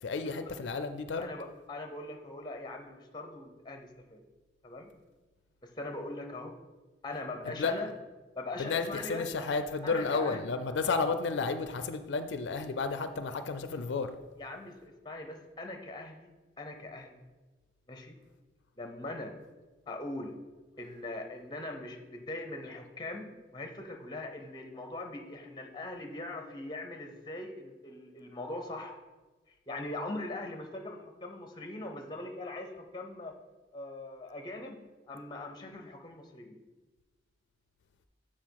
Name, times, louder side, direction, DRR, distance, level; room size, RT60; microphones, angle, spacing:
voice 1, 0.0-1.3 7.4-7.8 8.6-14.1, left 4 dB, 80° left, 10 dB, 0.4 m, -32 dB
voice 2, 1.2-4.2 4.6-4.9 5.6-6.6 7.0-7.9 8.3-9.3 9.8-10.5 14.4-17.2 17.9-18.2 18.8-19.3 19.9-20.3 20.8-29.0 29.7-33.3 33.7-34.8 35.1-36.6, left 2 dB, 25° left, 4 dB, 0.7 m, -41 dB
7.5 x 4.3 x 4.6 m, 1.2 s
head